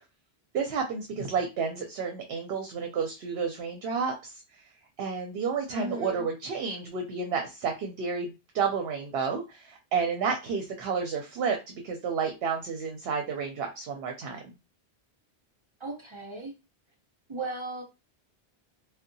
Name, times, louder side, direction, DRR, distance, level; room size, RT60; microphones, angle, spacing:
voice 1, 0.5-4.4 5.0-14.4, right 5 dB, 75° right, 0.8 m, -31 dB
voice 2, 5.7-6.3 15.8-16.5 17.3-17.8, right 2 dB, 40° right, 0.5 m, -36 dB
2.6 x 2.1 x 2.6 m
omnidirectional pair, 1.1 m